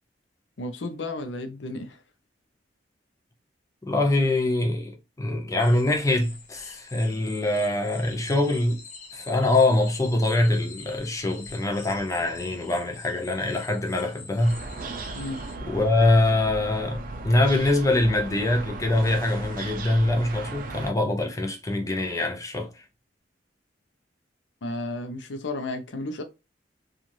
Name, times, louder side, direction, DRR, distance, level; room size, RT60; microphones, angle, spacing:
voice 1, 0.6-2.0 15.1-15.4 24.6-26.2, left 2 dB, 90° left, 0.6 m, -33 dB
voice 2, 3.8-8.8 9.1-14.6 15.6-22.8, left 2 dB, 20° left, 0.6 m, -24 dB
sound 1, 5.6-15.6, left 4 dB, 45° left, 0.9 m, -46 dB
sound 2, 14.4-20.9, right 3 dB, 50° right, 0.5 m, -37 dB
3.0 x 2.4 x 2.6 m
head